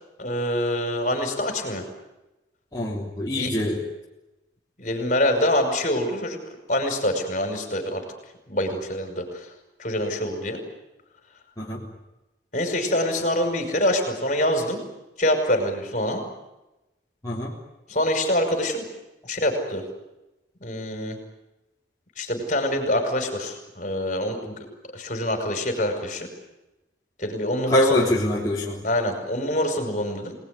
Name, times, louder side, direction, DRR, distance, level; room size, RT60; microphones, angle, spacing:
voice 1, 0.2-1.9 3.4-3.5 4.8-6.4 6.7-8.0 8.5-9.5 9.8-10.6 12.5-14.8 15.2-16.2 17.9-18.9 19.2-19.8 20.6-21.2 22.2-24.7 24.9-26.3 27.2-28.1 28.8-30.4, left 1 dB, 40° left, 5 dB, 5.8 m, -25 dB
voice 2, 2.7-3.8 11.6-11.8 17.2-17.5 27.7-28.8, left 1 dB, 20° left, -6 dB, 3.5 m, -24 dB
27.0 x 20.0 x 9.9 m, 1.0 s
head